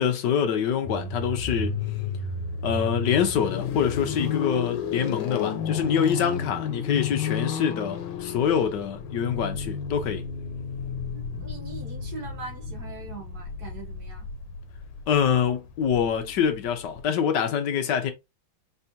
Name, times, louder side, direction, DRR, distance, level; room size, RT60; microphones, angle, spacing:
voice 1, 0.0-1.8 2.6-10.2 15.1-18.1, left 8 dB, 65° left, 1.3 m, -25 dB
sound 1, 0.8-17.0, left 6 dB, 85° left, 1.6 m, -32 dB
voice 2, 11.1-14.3, right 3 dB, 55° right, 1.7 m, -41 dB
4.3 x 3.4 x 2.8 m
omnidirectional pair, 2.2 m